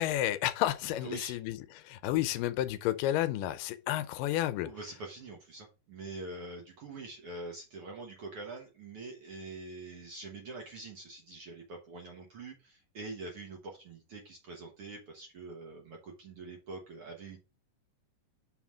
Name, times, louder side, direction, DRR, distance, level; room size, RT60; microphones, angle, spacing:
voice 1, 0.0-4.7, left 13 dB, 85° left, 2.2 m, -31 dB
voice 2, 1.0-1.4 4.6-17.4, right 3 dB, 60° right, 1.6 m, -45 dB
5.5 x 3.9 x 6.0 m
omnidirectional pair, 3.9 m